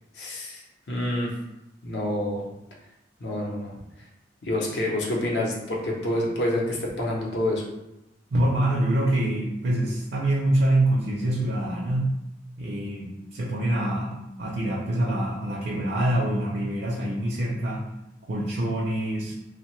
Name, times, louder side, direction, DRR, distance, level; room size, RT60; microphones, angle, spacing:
voice 1, 0.1-1.3 1.8-2.4 3.2-3.7 4.4-7.6, left 1 dB, 65° left, -2 dB, 0.6 m, -27 dB
voice 2, 8.3-12.2 12.6-17.8 18.3-19.3, right 1 dB, 60° right, -4 dB, 0.5 m, -25 dB
2.8 x 2.1 x 3.0 m, 0.89 s
head